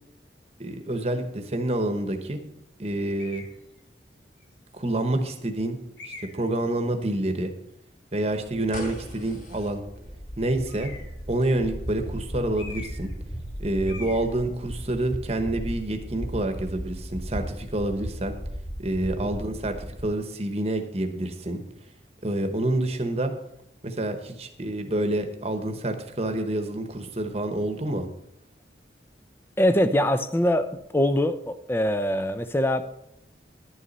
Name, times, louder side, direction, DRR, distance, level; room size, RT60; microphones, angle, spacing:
voice 1, 0.6-2.4 2.8-3.4 4.7-5.8 6.3-7.5 8.1-9.8 10.4-10.9 11.3-13.1 13.6-18.3 18.8-21.6 22.2-23.3 23.8-28.1, right 1 dB, 35° right, 1.1 m, -28 dB
sound 1, 3.2-3.6 4.4-4.5 6.0-6.5 10.6-11.2 12.5-13.1 13.4-13.6 13.9-14.3, left 3 dB, 85° left, 2.4 m, -42 dB
sound 2, 8.4-20.1, equal, 45° left, 4.0 m, -37 dB
voice 2, 29.6-30.7 30.9-32.8, left 1 dB, 15° left, 0.6 m, -23 dB
11.0 x 7.1 x 5.3 m
head